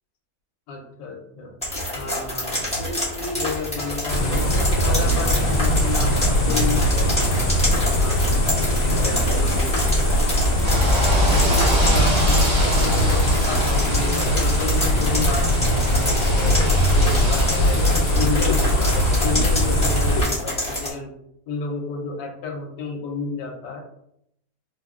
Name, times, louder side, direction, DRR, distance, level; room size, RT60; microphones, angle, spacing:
voice 1, 0.7-1.5 1.9-10.2 10.9-16.6 16.9-21.2 21.5-23.8, left 4 dB, 85° left, 1 dB, 1.2 m, -32 dB
sound 1, 1.6-20.9, left 1 dB, 5° left, 0.7 m, -28 dB
sound 2, 4.1-20.2, equal, 45° left, 1.0 m, -20 dB
sound 3, 10.6-19.2, equal, 45° right, 1.1 m, -27 dB
3.5 x 2.1 x 2.3 m, 0.75 s
omnidirectional pair, 1.9 m